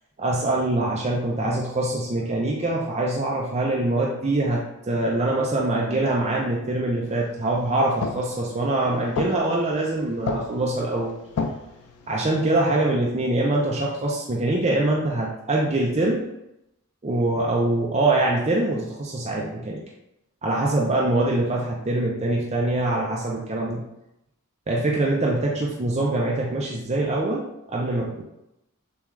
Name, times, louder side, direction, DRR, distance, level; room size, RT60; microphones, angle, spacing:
voice 1, 0.2-11.2 12.1-16.2 17.0-19.8 20.4-23.8 24.7-28.2, right 2 dB, 30° right, -3 dB, 0.5 m, -24 dB
sound 1, 7.1-12.3, left 4 dB, 90° left, 0.5 m, -34 dB
6.9 x 2.4 x 3.1 m, 0.87 s
head